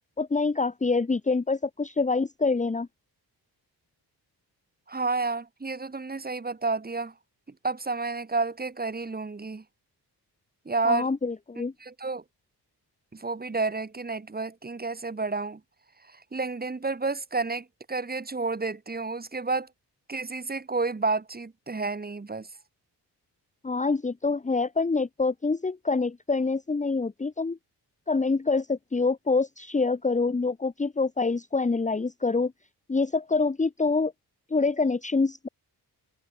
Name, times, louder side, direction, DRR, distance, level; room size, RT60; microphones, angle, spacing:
voice 1, 0.2-2.9 10.8-11.7 23.6-27.6 28.1-32.5 32.9-34.1 34.5-35.5, left 4 dB, 20° left, 1.4 m, -26 dB
voice 2, 4.9-7.1 7.6-9.6 10.6-11.1 11.8-12.2 13.1-15.6 16.3-19.7 20.1-22.5, right 3 dB, 20° right, 5.2 m, -30 dB
wide cardioid pair, 175°, 41 cm